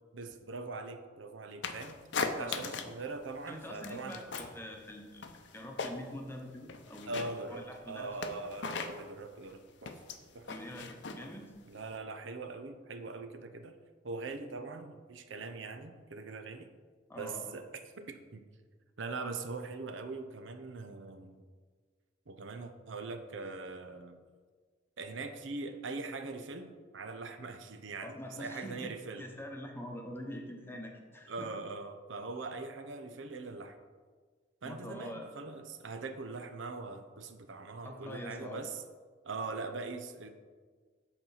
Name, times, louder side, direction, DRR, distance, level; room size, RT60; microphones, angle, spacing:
voice 1, 0.1-4.2 7.1-9.9 10.3-10.5 11.7-13.8 14.0-16.7 17.2-17.7 18.0-18.4 19.0-21.4 22.3-24.2 25.0-29.3 31.3-33.8 34.6-38.8 39.2-40.3, right 3 dB, 85° right, 8 dB, 0.7 m, -42 dB
sound 1, 1.6-3.0 3.3-4.6 4.9-6.2 6.6-12.0, left 4 dB, 70° left, 0.6 m, -39 dB
voice 2, 2.4-2.7 3.5-5.2 5.5-8.1 10.5-11.5 17.1-17.5 28.0-28.9 29.1-31.5 34.6-35.3 37.8-38.6, left 1 dB, 10° left, 2 dB, 0.9 m, -45 dB
7.9 x 4.5 x 5.6 m, 1.5 s
head